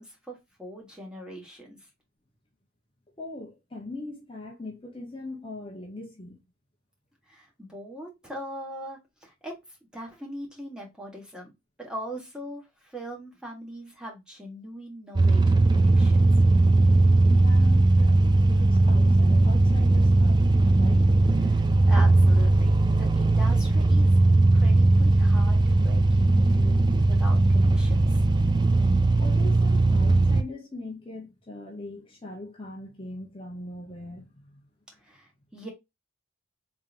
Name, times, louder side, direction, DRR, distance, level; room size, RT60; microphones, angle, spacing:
voice 1, 0.0-1.8 7.3-9.6 9.9-11.5 11.8-16.3 21.4-28.2 35.0-35.7, equal, 5° right, 1.4 m, -41 dB
voice 2, 3.2-6.4 17.3-21.2 29.2-34.6, left 2 dB, 25° left, 0.9 m, -41 dB
sound 1, 15.2-30.4, right 2 dB, 20° right, 0.3 m, -19 dB
3.7 x 3.6 x 2.5 m
head